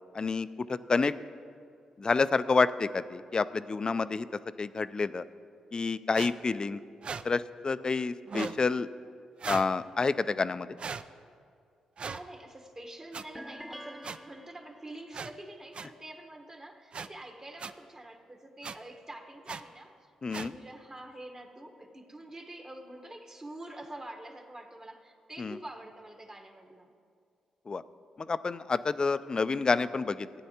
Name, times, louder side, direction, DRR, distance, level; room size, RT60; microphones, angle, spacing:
voice 1, 0.1-1.1 2.0-4.3 4.6-5.2 5.7-6.8 7.2-8.9 9.5-10.7 20.2-20.5 25.4-25.6 27.7-27.8 28.2-30.3, left 4 dB, 40° left, 14 dB, 0.3 m, -28 dB
sound 1, 6.1-6.3 7.0-7.2 8.3-8.6 9.4-9.7 10.8-11.0 12.0-12.2 13.1-13.2 14.0-14.2 15.1-15.3 15.7-15.9 16.9-17.1 17.6-17.7 18.6-18.8 19.5-19.6 20.3-20.5, right 5 dB, 50° right, 0.3 m, -37 dB
voice 2, 12.1-19.9 20.4-26.9, right 1 dB, 30° right, 2 dB, 1.2 m, -46 dB
sound 2, 13.3-15.1, equal, 5° right, 0.6 m, -46 dB
15.5 x 9.1 x 2.8 m, 2.3 s
supercardioid pair, 60°, 2 cm